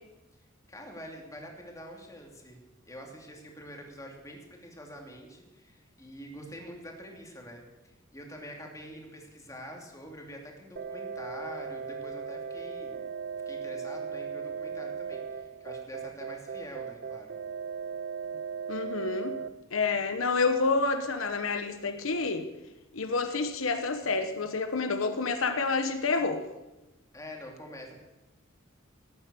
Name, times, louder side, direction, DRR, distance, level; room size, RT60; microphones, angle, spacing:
voice 1, 0.7-2.6 2.8-13.1 13.5-17.3 27.1-28.0, equal, 15° left, 1 dB, 2.8 m, -46 dB
sound 1, 10.8-19.5, right 6 dB, 50° right, 0.5 m, -38 dB
voice 2, 18.7-19.4 19.7-22.5 22.9-26.4, left 4 dB, 90° left, 8 dB, 1.1 m, -28 dB
18.0 x 8.8 x 7.0 m, 1.0 s
head